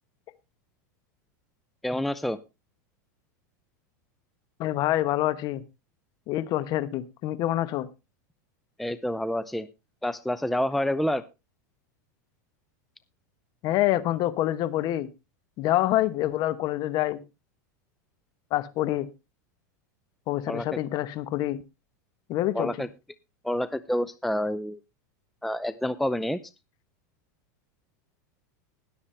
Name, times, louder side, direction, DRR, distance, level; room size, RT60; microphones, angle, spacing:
voice 1, 1.8-2.4 8.8-9.7 10.0-11.2 20.5-20.8 22.5-22.9 23.4-24.8 25.4-26.4, left 1 dB, ahead, 14 dB, 0.5 m, -28 dB
voice 2, 4.6-5.6 6.3-7.9 13.6-15.1 15.6-17.2 18.5-19.1 20.3-21.6 22.3-22.9, left 14 dB, 45° left, 16 dB, 1.0 m, -26 dB
20.0 x 7.2 x 3.2 m, 0.25 s
supercardioid pair, 120°, 10 cm